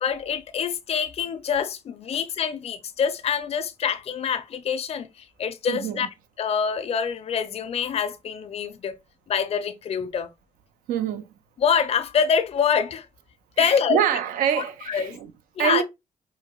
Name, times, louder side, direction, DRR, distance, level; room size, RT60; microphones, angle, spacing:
voice 1, 0.0-6.1 6.4-9.0 9.3-10.3 11.6-13.1 13.6-14.0 14.9-15.2 15.6-15.8, left 7 dB, 45° left, 0.4 m, -25 dB
voice 2, 5.7-6.1 10.9-11.3 13.6-15.3 15.6-15.8, right 9 dB, 85° right, 0.4 m, -25 dB
4.6 x 2.2 x 2.3 m
supercardioid pair, 55°, 14 cm